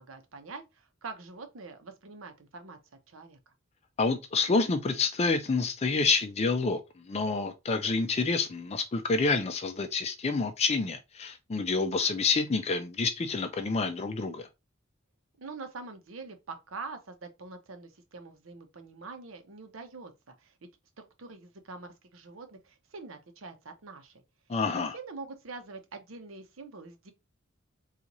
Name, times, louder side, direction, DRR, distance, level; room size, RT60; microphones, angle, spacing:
voice 1, 0.0-2.8 3.1-3.4 15.4-20.7 21.0-24.2 24.7-27.1, right 4 dB, 85° right, 0.7 m, -45 dB
voice 2, 4.0-6.8 7.1-14.5 24.5-24.9, left 4 dB, 30° left, 0.4 m, -28 dB
3.9 x 2.4 x 2.9 m
head